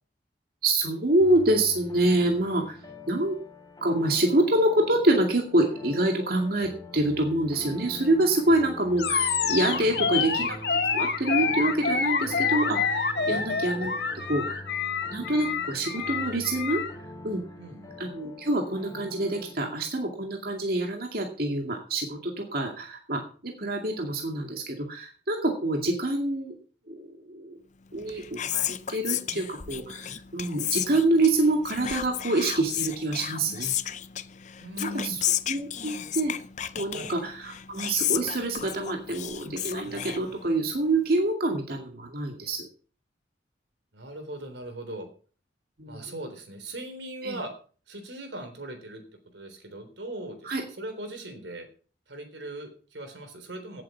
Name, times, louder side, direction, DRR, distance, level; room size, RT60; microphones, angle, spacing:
voice 1, 0.6-2.8 3.1-3.4 3.8-10.6 10.9-13.9 14.3-14.7 15.1-16.8 17.2-17.4 18.0-26.5 26.9-27.6 27.9-33.7 34.8-35.2 35.5-36.3 36.8-42.7 45.8-46.1 47.2-47.4 50.4-50.6, right 2 dB, 55° right, 2 dB, 2.3 m, -26 dB
sound 1, 1.2-19.5, left 1 dB, 20° left, 3.7 m, -44 dB
Animal, 9.0-16.9, left 5 dB, 65° left, 2.1 m, -27 dB
voice 2, 9.8-10.4 13.2-13.5 17.6-18.0 34.6-35.2 36.9-37.1 43.9-45.1 45.9-47.5 47.9-49.0 49.3-51.7 52.1-53.8, right 1 dB, 85° right, 7 dB, 3.7 m, -39 dB
Whispering, 27.9-40.8, left 11 dB, 40° left, 0.6 m, -33 dB
17.0 x 7.9 x 5.8 m, 0.42 s
head